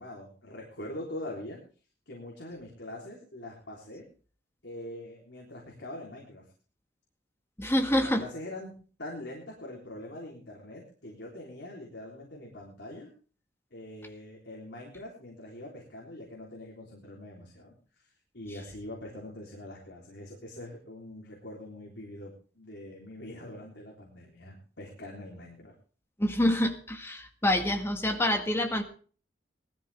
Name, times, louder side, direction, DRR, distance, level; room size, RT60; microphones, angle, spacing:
voice 1, 0.0-1.6 2.1-4.1 4.6-6.4 7.8-8.7 9.0-13.1 13.7-25.7, left 1 dB, 75° left, -2 dB, 3.6 m, -43 dB
voice 2, 7.6-8.2 26.2-28.8, left 1 dB, 15° left, 5 dB, 1.7 m, -26 dB
20.0 x 13.0 x 3.5 m, 0.39 s
head